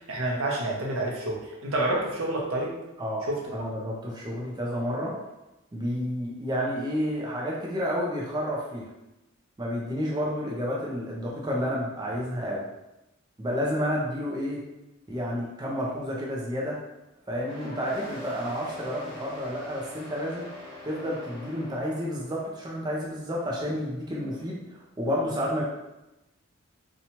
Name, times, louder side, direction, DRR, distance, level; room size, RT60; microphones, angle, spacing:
voice 1, 0.0-2.7 3.3-3.4, right 1 dB, 70° right, -2 dB, 0.7 m, -28 dB
voice 2, 3.0-5.1 5.7-8.9 9.6-12.6 13.4-14.6 15.1-16.8 17.3-20.5 20.8-25.6, equal, 20° right, -4 dB, 0.4 m, -30 dB
sound 1, 17.4-22.5, left 2 dB, 30° left, 1.1 m, -43 dB
2.8 x 2.2 x 2.8 m, 0.96 s
head